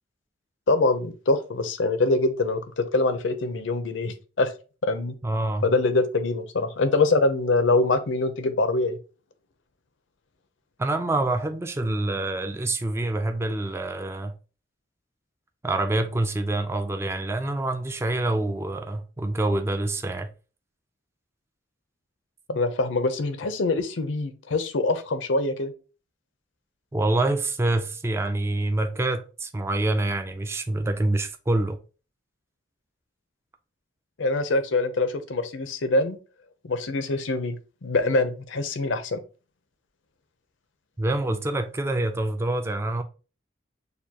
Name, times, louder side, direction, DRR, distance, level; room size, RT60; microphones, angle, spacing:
voice 1, 0.7-4.5 4.8-5.1 5.6-9.0 22.5-25.7 34.2-36.2 36.6-39.2, left 2 dB, 80° left, 0.6 m, -24 dB
voice 2, 5.2-5.7 10.8-14.3 15.6-20.3 26.9-31.8 41.0-43.0, right 2 dB, 15° right, 0.3 m, -26 dB
6.7 x 2.3 x 2.8 m
head